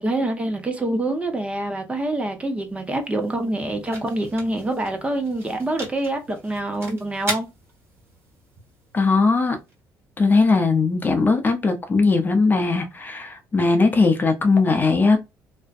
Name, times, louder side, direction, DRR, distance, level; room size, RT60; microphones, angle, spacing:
voice 1, 0.0-7.5, right 1 dB, 20° right, 0.7 m, -26 dB
sound 1, 2.5-10.4, right 2 dB, 35° right, 1.3 m, -39 dB
voice 2, 8.9-9.6 10.2-15.2, left 3 dB, 30° left, 0.6 m, -19 dB
2.6 x 2.2 x 2.3 m
cardioid pair, 90°, 7 cm